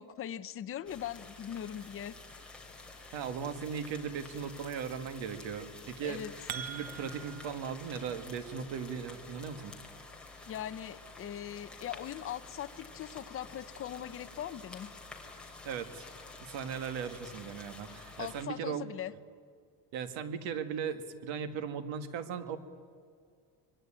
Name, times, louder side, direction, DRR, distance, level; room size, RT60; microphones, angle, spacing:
voice 1, 0.0-2.2 6.0-6.3 10.5-14.9 18.2-19.1, left 10 dB, 30° left, 10 dB, 0.6 m, -40 dB
sound 1, 0.9-18.5, left 3 dB, ahead, 2.8 m, -50 dB
voice 2, 3.1-6.2 6.5-9.7 15.6-16.1 16.4-18.9 19.9-22.6, right 7 dB, 70° right, 10 dB, 2.0 m, -38 dB
sound 2, 6.3-7.5, right 10 dB, 45° right, 0.9 m, -42 dB
25.5 x 22.5 x 8.9 m, 2.1 s
cardioid pair, 175°, 47 cm